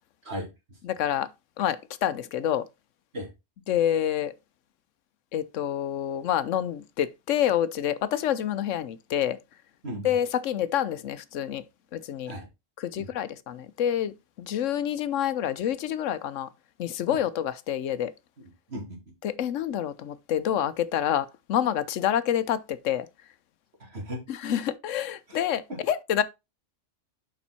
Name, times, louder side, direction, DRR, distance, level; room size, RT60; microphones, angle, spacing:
voice 1, 0.8-1.3 1.6-2.6 3.7-4.3 5.3-9.4 10.0-11.6 11.9-12.3 12.8-16.5 16.8-18.1 19.2-23.1 24.3-26.2, left 10 dB, 80° left, 1.0 m, -27 dB
voice 2, 9.8-10.1 12.3-12.5 13.0-13.1 17.1-17.2 18.4-19.0 23.8-24.2 25.3-25.4 25.7-25.8, equal, 55° right, 2.8 m, -36 dB
7.1 x 5.3 x 4.2 m
omnidirectional pair, 1.3 m